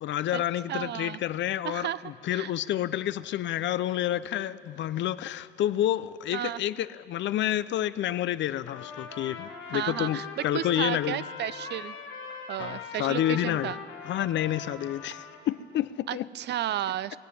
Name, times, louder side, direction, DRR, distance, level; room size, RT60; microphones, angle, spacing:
voice 1, 0.0-11.2 12.6-13.7 14.1-16.3, left 12 dB, 65° left, 0.5 m, -29 dB
voice 2, 0.7-1.2 1.6-2.0 2.3-2.5 6.3-6.6 9.7-12.0 12.5-13.8 16.1-17.2, right 11 dB, 60° right, 0.4 m, -33 dB
Trumpet, 8.7-15.4, left 5 dB, 85° left, 1.7 m, -41 dB
20.0 x 7.7 x 8.3 m
cardioid pair, 90°, 20 cm